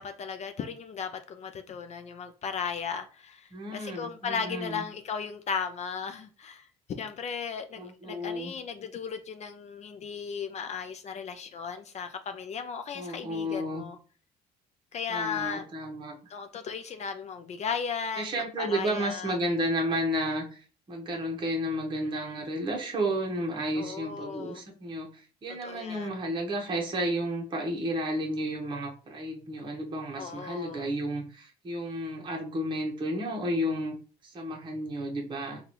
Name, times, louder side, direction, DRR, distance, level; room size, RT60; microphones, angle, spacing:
voice 1, 0.0-14.0 14.9-15.7 16.3-19.4 23.8-24.6 25.5-26.1 30.2-30.9, left 6 dB, 40° left, 0.4 m, -36 dB
voice 2, 3.5-4.8 7.8-8.5 12.9-13.8 15.1-16.1 18.2-34.0 34.2-35.6, equal, 30° right, 0.9 m, -32 dB
3.8 x 2.3 x 3.0 m
cardioid pair, 110°, 17 cm